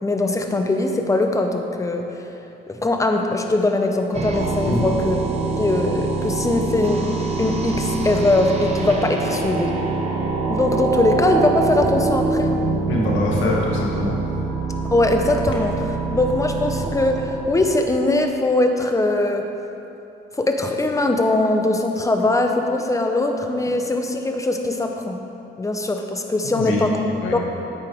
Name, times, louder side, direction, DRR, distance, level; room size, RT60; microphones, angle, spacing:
voice 1, 0.0-2.2 2.7-5.2 5.6-7.0 7.4-9.7 10.5-12.6 14.9-19.4 20.3-25.2 25.6-27.0 27.3-27.4, left 2 dB, 15° left, 4 dB, 0.9 m, -21 dB
sound 1, 4.1-18.2, right 3 dB, 35° right, 1.2 m, -24 dB
voice 2, 12.9-14.1 26.4-26.9 27.2-27.3, left 2 dB, 80° left, -3 dB, 1.9 m, -23 dB
9.4 x 8.9 x 3.6 m, 2.9 s
cardioid pair, 90°, 20 cm